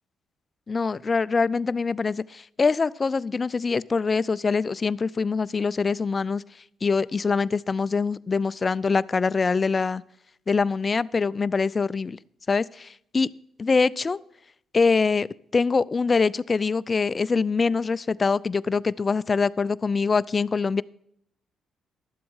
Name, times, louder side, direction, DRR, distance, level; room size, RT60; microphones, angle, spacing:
voice 1, 0.7-6.4 6.8-10.0 10.5-12.2 12.5-13.3 13.6-14.2 14.7-15.3 15.5-20.8, left 4 dB, 30° left, 18 dB, 0.4 m, -24 dB
12.0 x 7.7 x 5.5 m, 0.71 s
cardioid pair, 90°, 0 cm